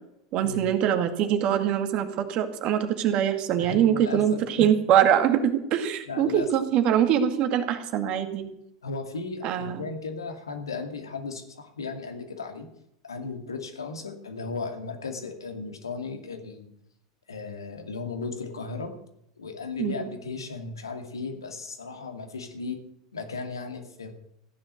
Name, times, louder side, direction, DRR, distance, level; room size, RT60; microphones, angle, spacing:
voice 1, 0.3-8.5 9.4-9.9 19.8-20.1, right 9 dB, 45° right, 7 dB, 2.1 m, -23 dB
voice 2, 3.6-4.7 6.1-6.5 8.8-12.7 13.0-16.7 17.3-18.9 19.4-22.8 23.1-24.1, left 4 dB, 85° left, 5 dB, 2.4 m, -35 dB
15.0 x 10.5 x 6.6 m, 0.78 s
figure-of-eight pair, 85°, 2 cm